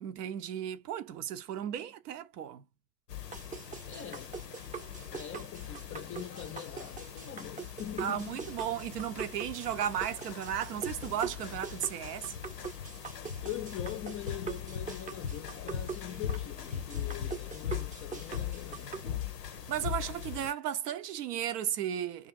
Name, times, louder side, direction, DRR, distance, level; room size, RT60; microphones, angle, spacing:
voice 1, 0.0-2.6 8.0-12.3 19.7-22.3, right 10 dB, 75° right, 0.6 m, -35 dB
sound 1, 3.1-20.5, left 9 dB, 85° left, 0.6 m, -40 dB
sound 2, 3.3-19.0, right 6 dB, 15° right, 0.6 m, -43 dB
voice 2, 3.8-4.4 5.1-8.5 13.4-19.0, left 10 dB, 30° left, 0.4 m, -43 dB
2.4 x 2.4 x 2.4 m
figure-of-eight pair, 55°, 48 cm